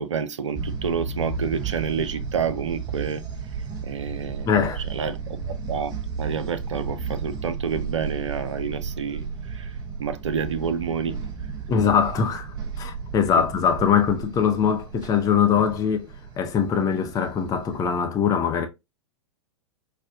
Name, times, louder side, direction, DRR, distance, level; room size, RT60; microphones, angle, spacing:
voice 1, 0.0-3.2 3.8-4.5 4.9-5.2 5.7-5.9 6.2-9.7 10.0-11.2, right 6 dB, 80° right, 0.5 m, -28 dB
sound 1, 0.5-18.0, right 5 dB, 30° right, 0.8 m, -34 dB
voice 2, 4.5-4.8 11.7-16.1 16.4-18.7, left 7 dB, 25° left, 0.7 m, -22 dB
5.0 x 2.1 x 2.6 m
figure-of-eight pair, 100°, 15 cm